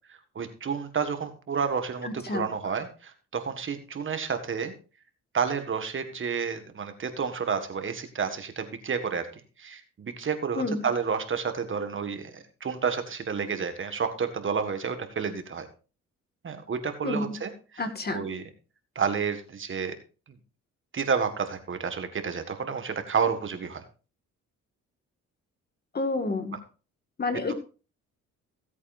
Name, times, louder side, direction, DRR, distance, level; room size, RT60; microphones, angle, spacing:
voice 1, 0.3-4.7 5.3-9.3 9.6-15.7 16.4-17.8 18.1-18.4 18.9-20.0 20.9-23.8, right 6 dB, 40° right, 8 dB, 1.7 m, -30 dB
voice 2, 2.0-2.7 10.5-10.9 17.0-17.4 17.8-18.2 25.9-26.6 27.2-27.5, left 3 dB, 30° left, 8 dB, 1.9 m, -30 dB
16.5 x 8.3 x 2.6 m, 0.33 s
cardioid pair, 90°, 30 cm